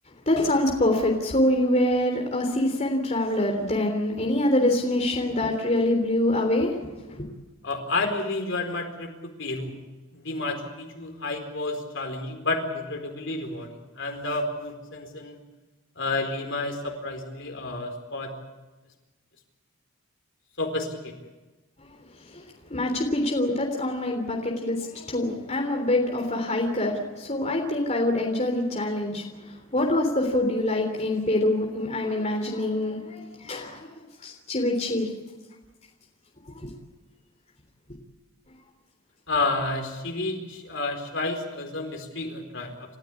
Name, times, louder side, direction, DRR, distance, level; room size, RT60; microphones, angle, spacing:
voice 1, 0.3-7.3 22.2-22.4 22.7-35.1 36.5-36.7, left 1 dB, 30° left, 1 dB, 3.4 m, -25 dB
voice 2, 7.6-9.1 9.4-9.8 10.1-13.7 13.9-15.4 16.0-18.4 20.6-21.1 39.3-43.0, left 2 dB, 55° left, 4 dB, 4.4 m, -30 dB
29.5 x 15.0 x 8.6 m, 1.2 s
head